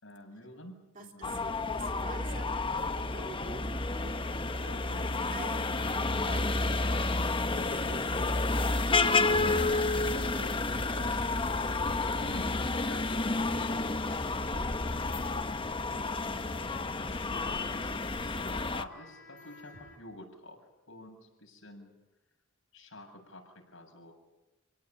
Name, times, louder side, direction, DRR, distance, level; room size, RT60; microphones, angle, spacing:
voice 1, 0.0-1.5 4.6-5.6 8.6-10.2 10.9-13.8 15.9-21.9 22.7-24.1, left 1 dB, 80° left, 1 dB, 7.6 m, -49 dB
voice 2, 0.9-4.3 5.3-5.7 6.2-8.4 10.3-10.6 14.2-14.6, right 2 dB, 40° right, 3 dB, 3.2 m, -46 dB
sound 1, 1.2-18.8, left 3 dB, 25° left, 1.0 m, -30 dB
Bowed string instrument, 5.7-13.0, right 2 dB, 65° right, 2.7 m, -52 dB
sound 2, 9.6-20.0, left 2 dB, 60° left, 4.5 m, -53 dB
28.0 x 18.0 x 9.1 m, 0.96 s
head